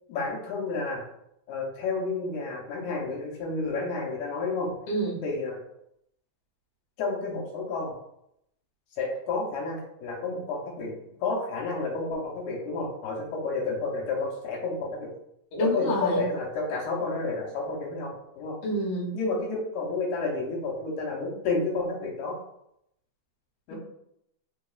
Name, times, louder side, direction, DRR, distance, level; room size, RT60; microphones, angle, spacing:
voice 1, 0.1-1.0 1.5-4.7 5.2-5.6 7.0-7.9 8.9-10.9 11.2-15.1 15.6-18.6 19.1-22.4 23.7-23.8, left 3 dB, 85° left, -2 dB, 2.2 m, -30 dB
voice 2, 4.9-5.2 15.5-16.3 18.6-19.2, equal, 65° left, -3 dB, 1.6 m, -27 dB
4.0 x 3.5 x 2.3 m, 0.78 s
omnidirectional pair, 3.4 m